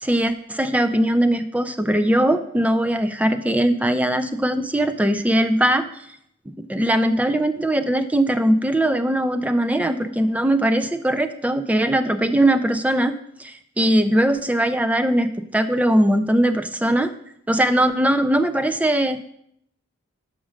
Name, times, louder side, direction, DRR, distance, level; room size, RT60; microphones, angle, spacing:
voice 1, 0.0-5.9 6.6-13.1 13.4-17.1 17.5-19.2, right 1 dB, 5° right, 9 dB, 0.3 m, -20 dB
6.1 x 5.0 x 6.4 m, 0.72 s
head